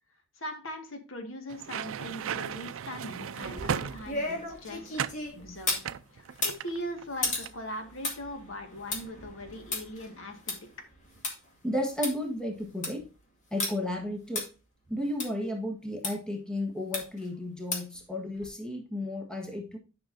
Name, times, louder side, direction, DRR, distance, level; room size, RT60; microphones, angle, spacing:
voice 1, 0.4-5.8 6.1-10.5, equal, 75° left, 5 dB, 1.8 m, -40 dB
sound 1, 1.5-4.4 5.0-5.3 5.8-7.0 7.3-7.6, right 7 dB, 80° right, 0.4 m, -35 dB
sound 2, 3.4-5.9 6.3-11.3 11.7-11.8 12.0-12.1 12.6-13.0 13.6-13.7 14.4-14.5 15.2-15.3 16.0-16.1 16.9-17.3 17.7-18.0 18.4-18.5, left 2 dB, 35° left, 2.1 m, -34 dB
voice 2, 11.6-13.1 13.5-14.4 14.9-19.8, left 1 dB, 5° left, 2 dB, 1.4 m, -33 dB
10.0 x 5.8 x 2.6 m, 0.34 s
head